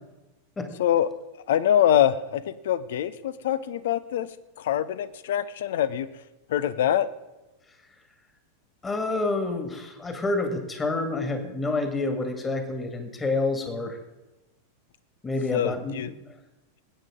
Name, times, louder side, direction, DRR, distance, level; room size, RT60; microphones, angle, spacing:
voice 1, 1.5-4.3 4.6-6.1 6.5-7.1 15.5-16.1, left 10 dB, 55° left, 15 dB, 0.6 m, -24 dB
voice 2, 8.8-14.0 15.2-16.1, left 2 dB, 15° left, 6 dB, 2.0 m, -28 dB
20.5 x 9.1 x 3.7 m, 1.0 s
figure-of-eight pair, 90°, 0 cm